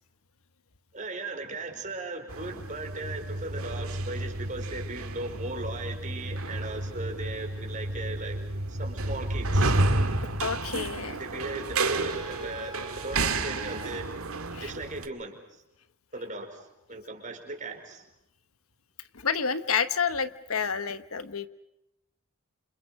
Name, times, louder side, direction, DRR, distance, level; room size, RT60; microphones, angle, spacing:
voice 1, 0.9-8.4 8.7-9.7 11.2-14.1 14.6-15.4 16.1-18.0, right 2 dB, 35° right, 4 dB, 4.7 m, -37 dB
sound 1, 2.3-15.1, right 2 dB, 85° right, 2.0 m, -31 dB
voice 2, 10.4-11.2 14.5-14.7 19.1-21.5, left 6 dB, 85° left, 12 dB, 1.2 m, -29 dB
Trumpet, 12.0-14.1, equal, 20° right, 3.4 m, -46 dB
28.5 x 28.0 x 4.9 m, 0.84 s
head